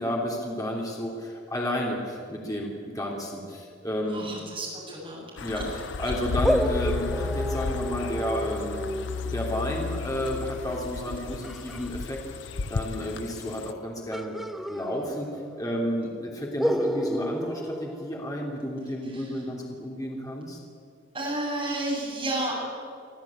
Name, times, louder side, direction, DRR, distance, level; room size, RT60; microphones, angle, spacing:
voice 1, 0.0-4.3 5.4-8.9 9.3-12.2 12.7-14.4 14.7-15.3 15.6-20.6, equal, 20° left, -2 dB, 3.3 m, -31 dB
voice 2, 4.1-5.3 5.6-5.7 19.1-19.2 21.1-22.5, right 1 dB, 25° right, -4 dB, 7.6 m, -31 dB
sound 1, 5.4-13.7, left 4 dB, 65° left, 0.6 m, -33 dB
sound 2, 6.4-11.9 14.1-15.6 15.8-15.9 16.6-18.8, equal, ahead, 0.7 m, -31 dB
25.0 x 14.0 x 8.8 m, 2.3 s
head